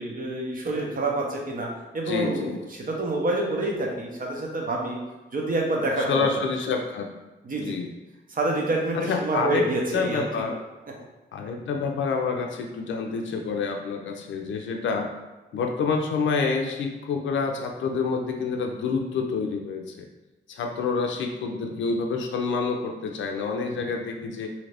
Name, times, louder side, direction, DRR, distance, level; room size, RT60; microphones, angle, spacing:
voice 1, 0.0-1.7 1.9-5.0 5.3-6.3 7.4-7.8 8.3-10.2, right 2 dB, 45° right, -1 dB, 0.8 m, -27 dB
voice 2, 2.1-2.6 6.1-7.1 7.6-7.9 9.1-9.6 9.9-10.6 11.3-15.1 15.5-20.1 20.5-24.5, left 5 dB, 75° left, 3 dB, 0.4 m, -28 dB
2.7 x 2.5 x 3.2 m, 1.1 s
cardioid pair, 80°, 19 cm